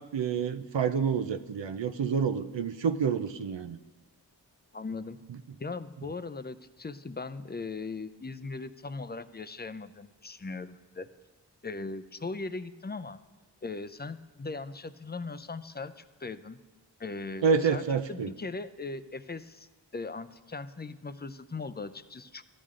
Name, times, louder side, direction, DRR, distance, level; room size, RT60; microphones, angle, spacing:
voice 1, 0.0-3.8 17.4-18.3, right 6 dB, 90° right, 9 dB, 0.6 m, -28 dB
voice 2, 4.7-5.2 5.6-11.1 11.6-13.2 13.6-16.6 17.0-17.8 18.1-22.4, left 3 dB, 25° left, 13 dB, 0.5 m, -39 dB
15.0 x 12.0 x 3.7 m, 1.2 s
wide cardioid pair, 45°, 43 cm